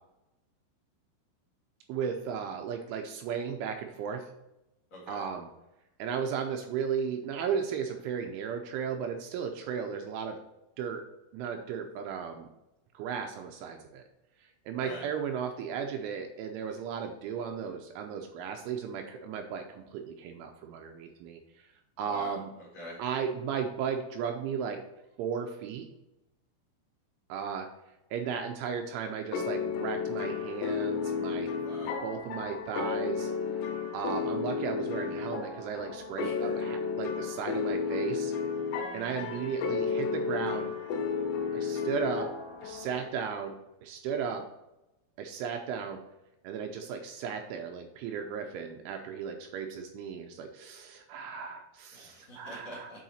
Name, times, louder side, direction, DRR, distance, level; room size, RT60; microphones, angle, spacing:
voice 1, 1.9-4.3 5.1-5.5 6.0-10.4 10.8-11.0 11.3-12.5 12.9-14.0 14.4-21.4 22.0-22.5 23.0-24.8 25.2-25.9 27.3-27.7 28.1-31.5 32.0-33.3 33.9-38.3 38.9-40.7 41.5-42.3 42.6-43.6 43.8-44.4 45.2-46.0 46.4-52.9, right 7 dB, 80° right, 4 dB, 2.9 m, -35 dB
voice 2, 4.9-5.3 14.8-15.1 22.0-23.0 31.6-32.0 36.2-36.6 51.9-53.0, left 1 dB, 45° left, -6 dB, 2.4 m, -45 dB
sound 1, 29.3-43.0, left 5 dB, 85° left, 3.9 m, -33 dB
9.2 x 4.8 x 4.2 m, 0.93 s
omnidirectional pair, 5.9 m